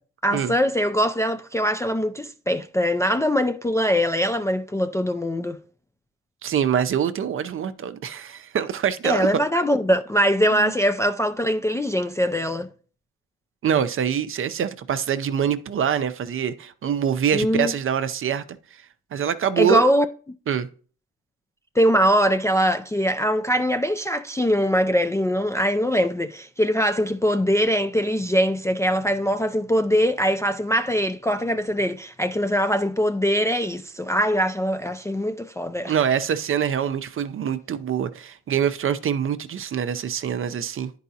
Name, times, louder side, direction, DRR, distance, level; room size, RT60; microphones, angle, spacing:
voice 1, 0.2-5.6 9.0-12.7 17.3-17.7 19.6-20.1 21.8-35.9, equal, 10° left, 0.3 m, -22 dB
voice 2, 6.4-9.4 10.5-10.7 13.6-18.4 18.7-18.8 19.1-19.9 20.5-20.7 35.9-40.9, right 8 dB, 45° right, 0.5 m, -24 dB
10.0 x 4.7 x 2.7 m
cardioid pair, 90°, 30 cm